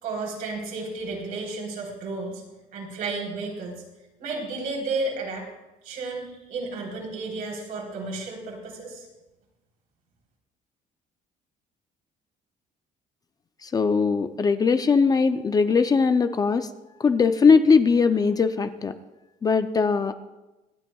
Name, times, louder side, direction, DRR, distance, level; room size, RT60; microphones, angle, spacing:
voice 1, 0.0-2.4 2.7-3.8 4.2-5.5 5.8-9.1, right 3 dB, 70° right, 0 dB, 3.5 m, -32 dB
voice 2, 13.6-16.7 17.0-18.9 19.4-20.1, left 5 dB, 25° left, 10 dB, 0.5 m, -20 dB
25.5 x 9.1 x 2.3 m, 1.1 s
cardioid pair, 140°, 15 cm